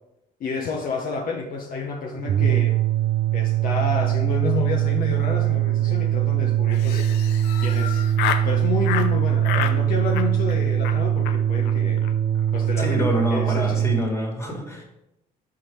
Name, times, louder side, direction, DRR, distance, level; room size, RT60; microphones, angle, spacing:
voice 1, 0.4-2.8 3.3-7.1 7.6-8.1 8.4-12.0 12.5-13.8, left 4 dB, 55° left, 1 dB, 0.8 m, -30 dB
sound 1, 2.2-14.1, right 11 dB, 35° right, 0.4 m, -22 dB
Laughter, 6.7-8.5 8.8-9.1 9.4-9.8 10.1-10.5 10.8-11.0 11.2-11.4 11.6-11.7 12.0-12.1 12.4-12.7, left 9 dB, 90° left, 0.6 m, -29 dB
voice 2, 12.8-14.8, equal, 15° left, 0 dB, 1.9 m, -26 dB
5.7 x 5.0 x 4.5 m, 0.88 s
cardioid pair, 110°, 17 cm